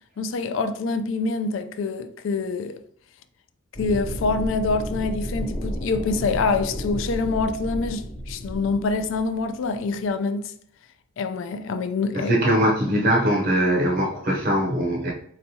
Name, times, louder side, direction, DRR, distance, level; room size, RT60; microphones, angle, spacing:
voice 1, 0.2-2.8 3.8-10.5 11.2-12.3, left 4 dB, 70° left, 0.3 m, -25 dB
sound 1, 3.7-10.1, equal, 25° left, 0.6 m, -32 dB
voice 2, 12.1-15.1, equal, 45° right, 0.7 m, -21 dB
4.4 x 3.0 x 2.7 m
head